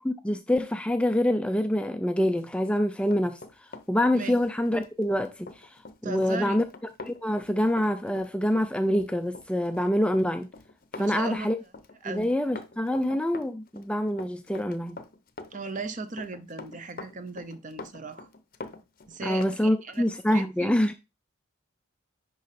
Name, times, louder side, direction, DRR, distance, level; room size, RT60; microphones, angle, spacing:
voice 1, 0.0-6.6 7.0-10.5 11.0-11.6 12.0-15.0 19.2-20.9, left 1 dB, 5° left, 0.3 m, -26 dB
Run, 2.6-19.6 19.9-20.1, left 3 dB, 40° left, 0.7 m, -45 dB
voice 2, 6.0-6.6 11.0-11.5 12.0-12.3 15.5-18.3 19.1-20.0 20.3-20.7, right 3 dB, 35° right, 0.7 m, -36 dB
10.5 x 3.8 x 4.2 m
head